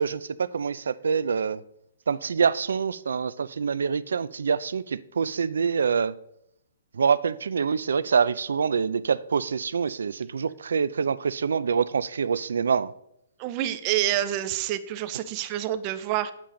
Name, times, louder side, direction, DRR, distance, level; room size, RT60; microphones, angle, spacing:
voice 1, 0.0-1.6 2.1-6.1 7.0-12.9, right 6 dB, 85° right, 0.4 m, -25 dB
voice 2, 13.4-16.3, right 12 dB, 25° right, 0.5 m, -27 dB
8.5 x 7.4 x 3.8 m
hypercardioid pair, 175°, 0 cm